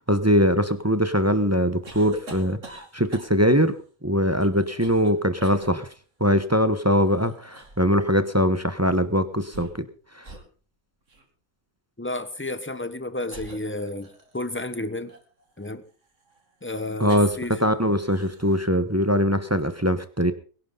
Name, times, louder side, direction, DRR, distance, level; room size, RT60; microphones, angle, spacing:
voice 1, 0.1-3.7 4.0-5.9 6.2-9.9 17.0-17.3 17.6-20.3, equal, 10° right, 11 dB, 1.0 m, -22 dB
sound 1, 1.8-3.6 4.4-5.1 5.4-5.7 6.9-7.9 9.3-9.9 10.2-10.5 11.1-11.3 12.4-12.5 13.3-14.5 15.1-17.6 17.9-18.6, right 2 dB, 60° right, 3.0 m, -44 dB
voice 2, 12.0-15.1 15.6-15.8 16.6-17.6, left 2 dB, 10° left, 11 dB, 1.1 m, -31 dB
22.0 x 11.0 x 3.9 m, 0.39 s
omnidirectional pair, 1.5 m